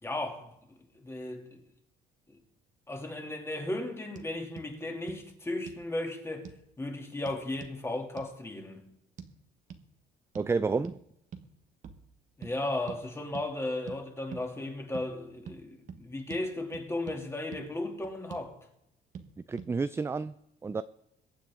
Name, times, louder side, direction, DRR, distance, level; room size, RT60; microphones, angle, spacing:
voice 1, 0.0-1.6 2.3-2.4 2.9-6.5 6.8-8.8 12.4-18.6, left 2 dB, 15° left, 2.8 m, -35 dB
sound 1, 4.1-4.3 4.6-4.7 5.1-5.2 5.7-5.9 6.4-6.6 7.3-7.8 8.2-8.3 9.2-9.3 9.7-9.8 10.3-10.5 10.8-11.0 11.3-11.5 11.8-12.0 12.4-12.5 12.9-13.0 13.3-13.5 13.9-14.0 14.3-14.5 14.9-15.1 15.5-15.6 15.9-16.0 16.3-16.4 16.7-17.2 17.5-17.6 18.0-18.5 19.1-19.3 19.6-19.7, right 7 dB, 50° right, 1.5 m, -44 dB
voice 2, 10.3-11.0 19.5-20.3 20.6-20.8, right 4 dB, 15° right, 0.4 m, -30 dB
22.5 x 8.8 x 3.7 m
cardioid pair, 110°, 17 cm